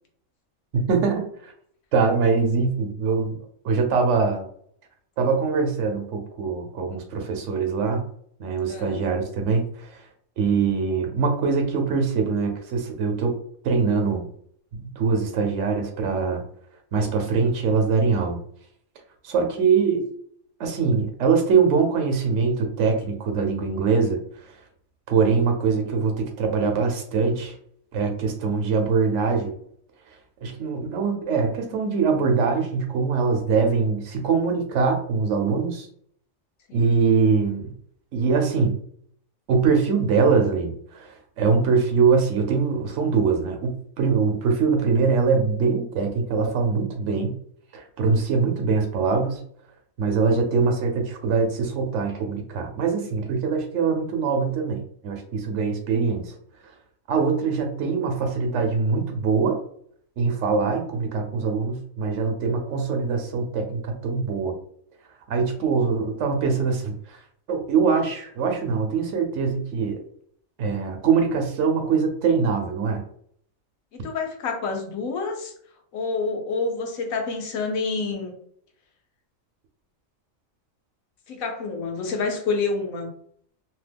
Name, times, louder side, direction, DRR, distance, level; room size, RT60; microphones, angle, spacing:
voice 1, 0.7-1.5 1.9-3.4 3.6-4.5 5.2-8.0 8.4-10.0 10.4-13.4 13.6-14.3 14.7-16.4 16.9-18.4 19.2-20.1 20.6-24.2 24.4-24.5 25.1-27.5 27.9-29.5 30.1-30.2 30.4-35.9 36.7-37.7 38.1-38.8 39.5-47.4 47.7-49.4 50.0-56.3 57.1-59.6 60.2-64.5 65.3-67.2 67.5-70.0 70.6-73.0, right 5 dB, 65° right, 4 dB, 1.0 m, -23 dB
voice 2, 8.7-9.0 36.7-36.9 73.9-75.5 75.9-78.4 81.3-83.1, left 4 dB, 80° left, 3 dB, 1.2 m, -28 dB
2.9 x 2.1 x 3.4 m, 0.65 s
omnidirectional pair, 1.4 m